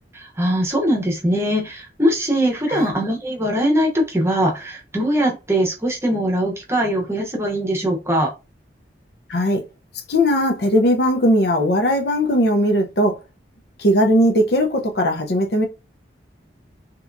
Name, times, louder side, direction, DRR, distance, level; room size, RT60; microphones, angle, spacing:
voice 1, 0.1-8.3, equal, 15° right, 0.8 m, -21 dB
voice 2, 9.3-9.6 10.1-13.2 13.8-15.7, equal, 60° left, 0.6 m, -18 dB
3.4 x 2.9 x 2.5 m
head